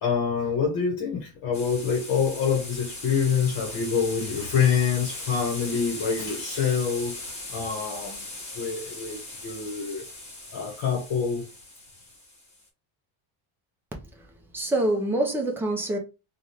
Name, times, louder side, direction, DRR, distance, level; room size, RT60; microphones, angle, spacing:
voice 1, 0.0-8.3 8.5-10.0 10.5-11.5, left 6 dB, 50° left, 1.1 m, -26 dB
sound 1, 1.5-12.6, left 2 dB, 15° left, 1.0 m, -39 dB
voice 2, 14.0-16.0, right 1 dB, 5° right, 0.4 m, -27 dB
3.3 x 2.4 x 2.8 m
cardioid pair, 155°, 47 cm